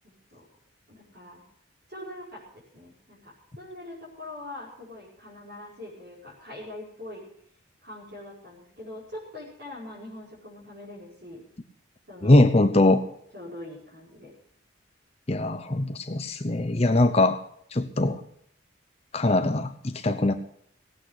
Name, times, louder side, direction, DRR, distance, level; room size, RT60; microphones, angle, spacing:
voice 1, 0.0-0.4 0.9-1.4 1.9-7.2 7.8-11.4 12.1-12.4 13.3-14.3, left 1 dB, 55° right, -8 dB, 5.0 m, -43 dB
voice 2, 12.2-13.0 15.3-17.4 17.7-18.2 19.1-20.3, left 2 dB, 30° left, 8 dB, 0.7 m, -21 dB
18.0 x 8.6 x 6.4 m, 0.67 s
head